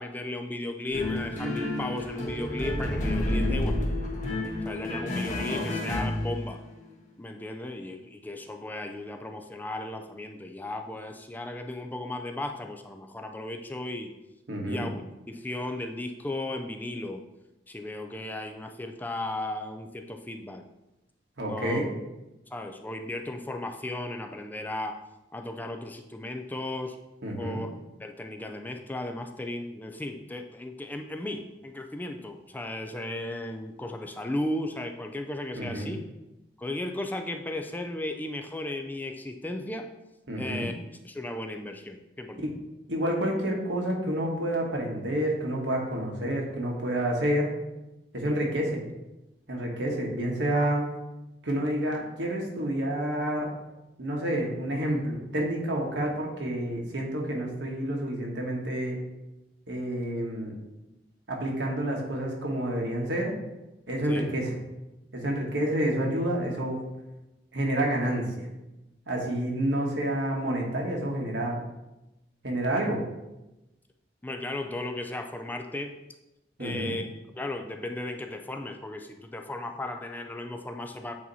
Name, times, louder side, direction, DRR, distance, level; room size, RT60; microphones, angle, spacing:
voice 1, 0.0-3.7 4.1-4.2 4.6-6.6 7.2-14.1 14.6-15.0 15.3-17.2 17.7-20.6 21.5-21.9 22.5-25.0 25.3-27.0 27.4-27.7 28.0-36.0 36.6-39.9 40.4-40.7 41.0-42.5 48.2-48.4 64.1-64.3 74.2-76.0 76.6-77.1 77.4-81.1, left 1 dB, 10° left, 4 dB, 0.3 m, -35 dB
sound 1, 0.9-6.7, left 1 dB, 45° left, 1.4 m, -30 dB
voice 2, 3.3-3.6 14.5-14.9 21.4-21.9 27.2-27.6 35.6-35.9 40.3-40.7 42.4-42.5 42.9-47.5 48.1-48.8 49.5-50.9 51.4-53.5 54.0-59.0 59.7-60.5 61.3-63.3 63.9-64.5 65.1-66.8 67.5-68.5 69.1-71.6 72.4-73.0 76.6-77.0, right 1 dB, 85° right, -1 dB, 1.4 m, -29 dB
8.5 x 2.9 x 4.1 m, 0.98 s
head